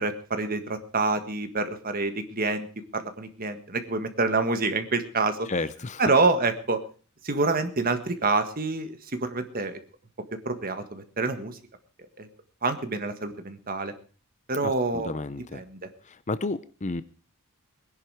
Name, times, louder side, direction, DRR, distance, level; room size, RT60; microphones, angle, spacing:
voice 1, 0.0-2.7 2.9-5.5 6.0-6.8 7.2-9.8 10.4-11.6 12.2-12.3 12.6-13.9 14.5-15.1 15.5-15.9, right 3 dB, 40° right, 8 dB, 1.6 m, -27 dB
voice 2, 5.5-6.0 14.6-15.6 16.1-17.0, left 3 dB, 30° left, 15 dB, 0.6 m, -32 dB
20.0 x 11.0 x 4.8 m, 0.39 s
head